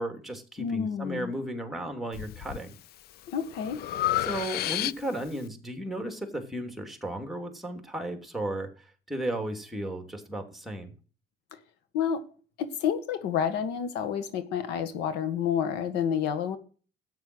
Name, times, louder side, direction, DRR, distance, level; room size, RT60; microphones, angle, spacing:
voice 1, 0.0-2.7 4.2-10.9, right 1 dB, ahead, 3.1 m, -34 dB
voice 2, 0.6-1.3 3.3-3.8 11.9-12.2 12.6-16.6, left 8 dB, 90° left, 1.7 m, -29 dB
Breathing, 2.1-2.6 3.1-5.3, left 14 dB, 70° left, 0.5 m, -31 dB
13.5 x 9.4 x 6.3 m
cardioid pair, 110°, 17 cm